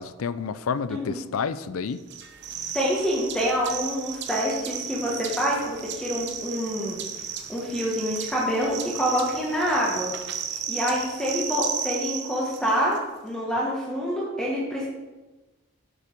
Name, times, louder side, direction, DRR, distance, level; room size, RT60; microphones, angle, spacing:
voice 1, 0.0-2.0, left 6 dB, 80° left, 15 dB, 0.4 m, -29 dB
voice 2, 0.9-1.2 2.7-7.0 7.5-10.1 10.7-13.0 13.2-14.9, equal, 5° left, -5 dB, 1.3 m, -26 dB
sound 1, 2.1-13.0, right 8 dB, 55° right, 0.9 m, -34 dB
7.9 x 5.8 x 5.9 m, 1.2 s
head